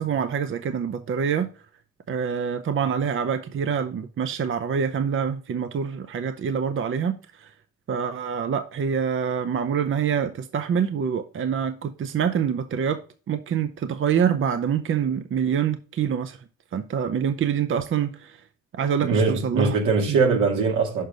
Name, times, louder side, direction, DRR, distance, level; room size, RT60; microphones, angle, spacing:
voice 1, 0.0-1.5 2.1-7.5 7.9-13.0 13.3-16.4 16.7-18.4 18.7-19.8 20.1-20.2, right 7 dB, 45° right, 0.6 m, -26 dB
voice 2, 19.0-21.1, right 4 dB, 80° right, 2.0 m, -21 dB
6.6 x 5.1 x 3.8 m
cardioid pair, 90°, 30 cm